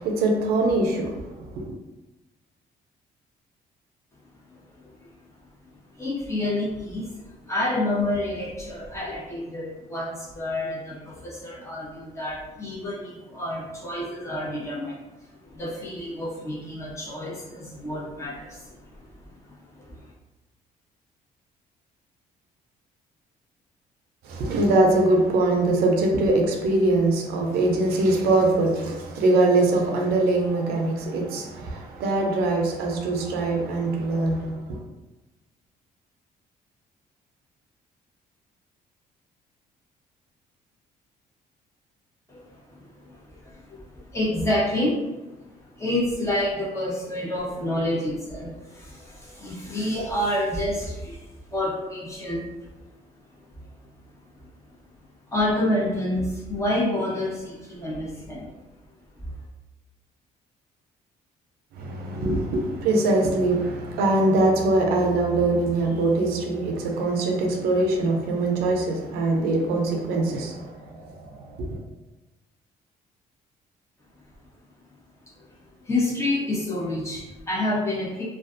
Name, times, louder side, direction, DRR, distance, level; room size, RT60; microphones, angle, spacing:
voice 1, 0.0-1.7 24.2-34.8 61.8-71.8, right 2 dB, 90° right, 1 dB, 0.5 m, -23 dB
voice 2, 4.5-5.1 6.0-20.1 42.3-45.4 45.8-52.7 55.3-58.5 75.4-75.5 75.8-78.2, left 1 dB, 20° left, -6 dB, 0.9 m, -29 dB
2.4 x 2.3 x 2.5 m, 1.1 s
cardioid pair, 95°, 16 cm